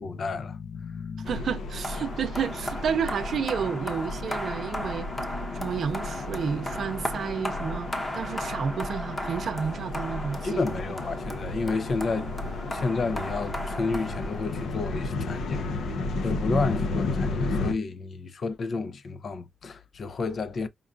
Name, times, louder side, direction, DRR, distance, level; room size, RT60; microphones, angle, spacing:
voice 1, 0.0-1.4 10.4-12.4 12.7-15.9 16.2-20.7, left 4 dB, 45° left, 0.5 m, -31 dB
sound 1, 1.2-17.7, left 3 dB, 80° left, 0.8 m, -33 dB
voice 2, 1.3-5.1 5.5-10.8 16.5-16.6, right 7 dB, 60° right, 0.5 m, -31 dB
sound 2, 1.8-14.9, left 1 dB, 20° left, 0.8 m, -36 dB
5.2 x 2.4 x 2.4 m
cardioid pair, 125°, 0 cm